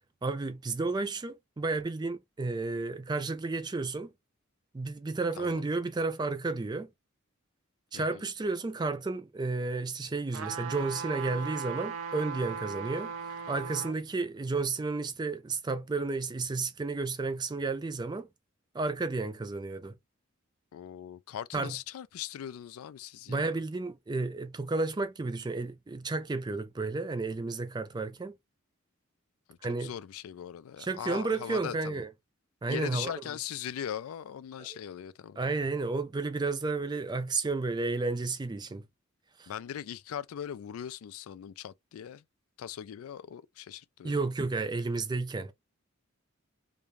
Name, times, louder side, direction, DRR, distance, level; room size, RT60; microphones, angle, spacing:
voice 1, 0.2-4.1 4.7-6.9 7.9-18.3 18.7-19.9 21.5-21.8 23.3-28.3 29.6-29.9 30.8-32.1 32.6-33.1 34.6-34.8 35.4-38.8 39.4-39.5 44.0-45.5, right 3 dB, 20° right, 0.4 m, -32 dB
sound 1, 10.3-14.0 14.5-14.6, right 6 dB, 85° right, 0.5 m, -38 dB
voice 2, 20.7-23.5 29.5-32.0 32.7-35.4 39.5-42.2 42.6-44.2, left 9 dB, 85° left, 0.3 m, -40 dB
2.5 x 2.2 x 3.0 m
head